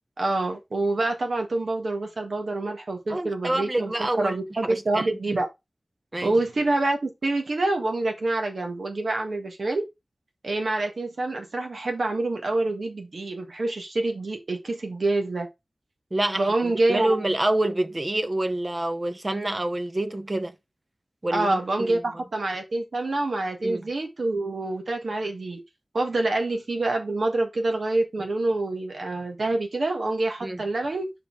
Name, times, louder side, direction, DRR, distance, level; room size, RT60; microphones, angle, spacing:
voice 1, 0.2-5.5 6.2-9.9 10.4-15.5 16.4-17.3 21.3-25.6 25.9-31.1, right 2 dB, 90° right, 1.5 m, -26 dB
voice 2, 3.1-4.4 4.6-5.3 6.1-6.3 16.1-20.5 21.2-22.0 23.6-23.8 30.4-30.6, right 1 dB, 40° right, 0.7 m, -27 dB
5.2 x 4.5 x 4.5 m
wide cardioid pair, 60°, 0 cm